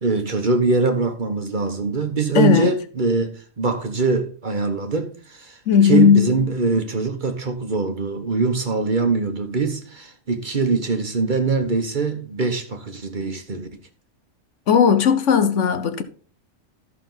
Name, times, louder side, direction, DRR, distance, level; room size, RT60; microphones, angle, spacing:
voice 1, 0.0-5.6 5.8-13.7, right 4 dB, 40° right, 1.2 m, -23 dB
voice 2, 2.3-2.7 5.7-6.3 14.7-16.0, left 7 dB, 70° left, 1.2 m, -16 dB
13.0 x 6.1 x 3.9 m
omnidirectional pair, 1.3 m